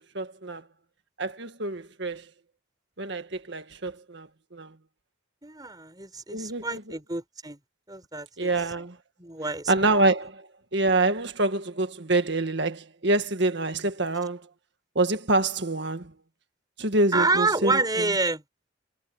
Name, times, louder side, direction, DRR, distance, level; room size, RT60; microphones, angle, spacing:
voice 1, 0.1-0.6 1.2-2.3 3.0-4.8 6.3-7.0 8.4-9.0 9.7-14.5 15.0-16.1 16.8-18.1, right 2 dB, 60° right, 1.9 m, -26 dB
voice 2, 5.4-7.6 7.9-8.5 9.2-9.7 17.1-18.4, right 3 dB, 20° right, 5.5 m, -28 dB
head